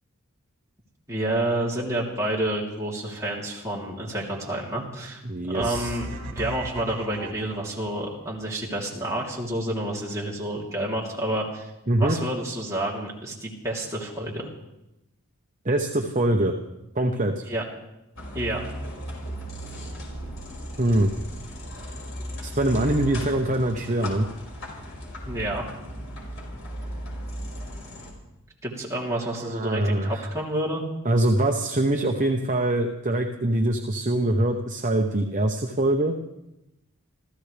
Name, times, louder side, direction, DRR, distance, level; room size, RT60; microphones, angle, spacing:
voice 1, 1.1-5.2 5.5-11.7 12.0-14.5 17.5-17.6 18.3-18.6 25.3-25.6 28.6-30.8, right 1 dB, 15° right, -4 dB, 3.2 m, -29 dB
voice 2, 5.2-5.9 11.9-12.2 15.6-16.5 16.9-17.4 20.8-21.1 22.4-24.3 29.2-30.3 31.0-36.2, right 1 dB, 35° right, 2 dB, 0.9 m, -23 dB
sound 1, 5.6-8.0, right 2 dB, 85° right, 1.7 m, -37 dB
sound 2, 18.2-28.1, equal, 60° left, 5.2 m, -36 dB
27.0 x 15.0 x 3.4 m, 0.92 s
head